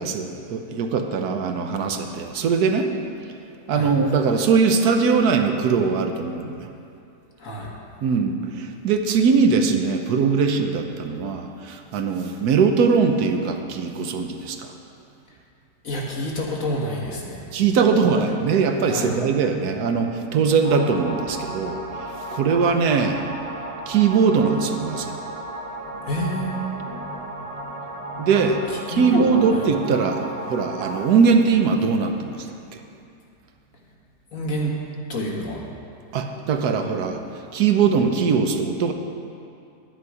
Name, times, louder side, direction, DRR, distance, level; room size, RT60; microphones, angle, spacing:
voice 1, 0.0-2.9 3.7-6.7 8.0-14.7 17.5-23.2 23.9-25.1 28.2-32.5 36.1-37.2 37.5-38.9, right 5 dB, 75° right, 5 dB, 1.2 m, -21 dB
voice 2, 15.8-17.4 18.9-19.1 25.9-28.3 28.9-29.6 34.3-34.7 35.1-35.6, equal, 55° left, -2 dB, 1.8 m, -29 dB
sound 1, 20.6-31.1, right 1 dB, 30° right, 0.6 m, -34 dB
9.9 x 9.6 x 4.8 m, 2.6 s
omnidirectional pair, 1.7 m